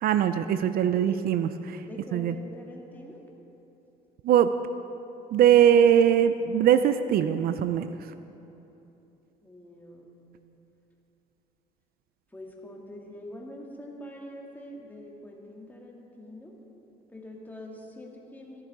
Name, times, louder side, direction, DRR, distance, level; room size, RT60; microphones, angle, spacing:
voice 1, 0.0-1.8 2.1-2.3 4.2-4.5 5.3-8.1, right 9 dB, 65° right, 11 dB, 0.5 m, -21 dB
voice 2, 0.8-1.2 1.9-3.3 9.4-10.3 12.3-16.6 17.1-18.6, left 1 dB, 10° left, -1 dB, 1.9 m, -44 dB
14.5 x 11.0 x 4.7 m, 2.9 s
cardioid pair, 110°, 17 cm